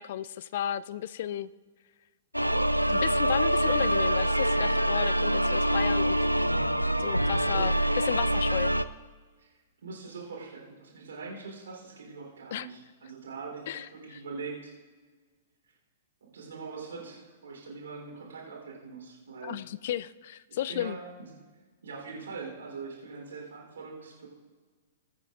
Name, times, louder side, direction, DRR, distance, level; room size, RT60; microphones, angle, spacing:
voice 1, 0.0-1.5 2.9-6.2 7.0-7.7 8.0-8.7 12.5-12.7 13.7-14.2 19.4-21.0, left 11 dB, 50° left, 18 dB, 0.3 m, -33 dB
sound 1, 2.3-8.8, right 1 dB, 90° right, 0.3 m, -25 dB
voice 2, 9.8-14.7 16.3-19.6 20.5-21.3 21.8-24.3, right 4 dB, 60° right, -2 dB, 3.6 m, -42 dB
20.5 x 9.0 x 2.5 m, 1.4 s
figure-of-eight pair, 105°, 0 cm